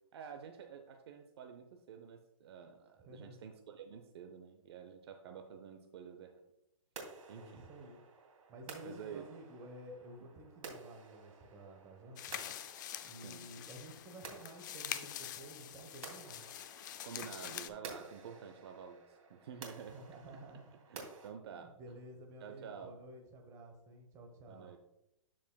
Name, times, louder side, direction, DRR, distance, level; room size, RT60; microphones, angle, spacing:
voice 1, 0.1-6.4 7.3-7.7 8.8-9.3 13.2-13.5 17.0-20.0 20.9-22.0 22.4-23.0 24.5-24.8, right 7 dB, 50° right, 5 dB, 0.7 m, -50 dB
voice 2, 3.1-3.4 7.3-8.0 8.5-12.4 13.0-16.5 19.9-20.6 21.5-24.8, right 1 dB, 15° right, 3 dB, 1.1 m, -52 dB
sound 1, 7.0-21.3, right 4 dB, 80° right, 2.7 m, -54 dB
sound 2, 12.2-17.7, left 11 dB, 35° left, 0.4 m, -45 dB
13.0 x 5.0 x 2.3 m, 0.83 s
hypercardioid pair, 155°, 17 cm